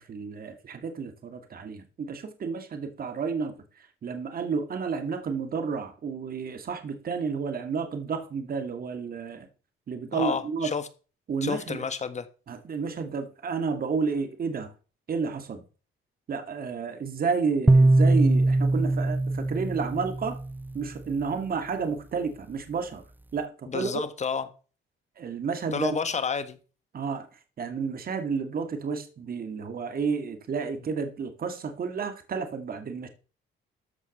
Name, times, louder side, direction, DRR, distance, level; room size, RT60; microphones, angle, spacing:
voice 1, 0.0-3.6 4.0-9.5 9.9-10.7 11.3-11.8 12.5-14.7 15.1-15.6 16.3-20.4 20.7-23.0 23.3-24.0 25.2-25.9 26.9-27.3 27.6-33.1, right 5 dB, 45° right, 2.2 m, -31 dB
voice 2, 10.1-10.9 11.4-12.3 23.7-24.5 25.7-26.6, left 6 dB, 35° left, 1.4 m, -30 dB
sound 1, 17.7-20.9, right 2 dB, 10° right, 0.6 m, -22 dB
14.0 x 5.3 x 6.6 m
cardioid pair, 120°, 21 cm